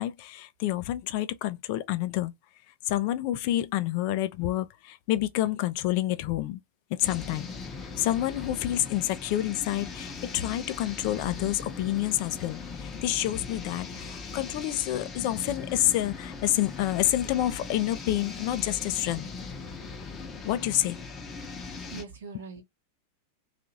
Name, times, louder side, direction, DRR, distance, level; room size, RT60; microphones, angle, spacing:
voice 1, 0.0-2.3 2.8-6.6 6.9-7.5 8.0-19.3 20.4-21.0, left 14 dB, 45° left, 0.3 m, -28 dB
sound 1, 7.0-22.0, left 4 dB, 20° left, 0.7 m, -40 dB
voice 2, 21.3-22.6, right 5 dB, 60° right, 0.8 m, -44 dB
2.7 x 2.4 x 2.7 m
figure-of-eight pair, 90°, 0 cm